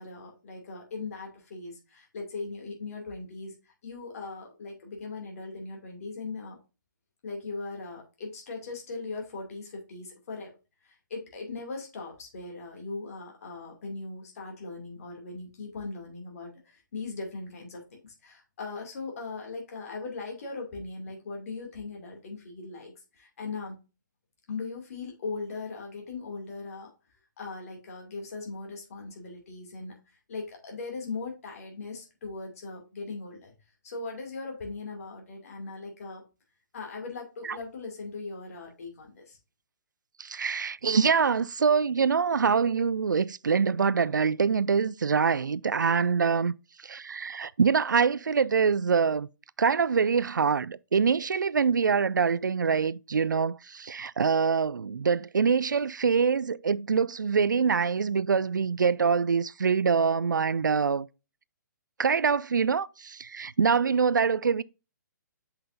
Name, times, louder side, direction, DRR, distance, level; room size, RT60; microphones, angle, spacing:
voice 1, 0.0-6.6 7.2-10.5 10.8-23.8 24.5-26.9 27.4-33.5 33.8-36.2 36.7-39.4, left 3 dB, 50° left, 2.4 m, -39 dB
voice 2, 40.2-46.5 46.8-49.3 49.6-61.1 62.0-64.6, right 6 dB, 70° right, 0.4 m, -25 dB
7.6 x 5.6 x 2.5 m
figure-of-eight pair, 130°, 10 cm